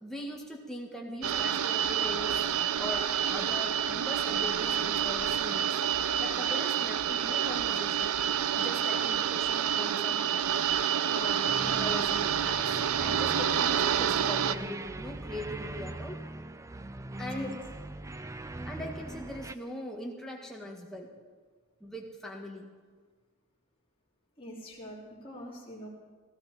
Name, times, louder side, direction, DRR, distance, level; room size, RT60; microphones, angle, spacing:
voice 1, 0.0-2.5 2.8-5.8 6.2-8.1 8.6-10.3 11.0-16.2 17.2-17.5 18.6-21.1 21.8-22.7, equal, ahead, -2 dB, 1.8 m, -41 dB
sound 1, 1.2-14.5, right 9 dB, 75° right, 0.5 m, -28 dB
sound 2, 11.5-19.5, right 2 dB, 15° right, 0.4 m, -40 dB
voice 2, 24.4-25.9, equal, 25° left, -4 dB, 3.1 m, -43 dB
16.5 x 14.5 x 4.3 m, 1.5 s
head